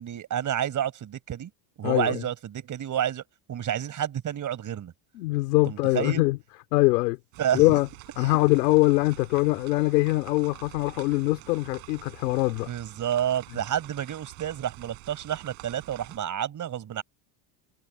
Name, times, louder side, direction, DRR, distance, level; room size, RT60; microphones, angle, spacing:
voice 1, 0.0-1.5 1.8-3.2 3.5-4.9 5.7-6.2 7.4-7.6 8.2-8.4 12.7-17.0, right 10 dB, 40° right, 5.4 m, -30 dB
voice 2, 1.8-2.2 5.2-6.4 6.7-7.2 7.5-7.9 8.2-12.7, left 21 dB, 90° left, 3.5 m, -23 dB
sound 1, 7.3-16.2, right 27 dB, 70° right, 7.8 m, -47 dB
supercardioid pair, 110°, 47 cm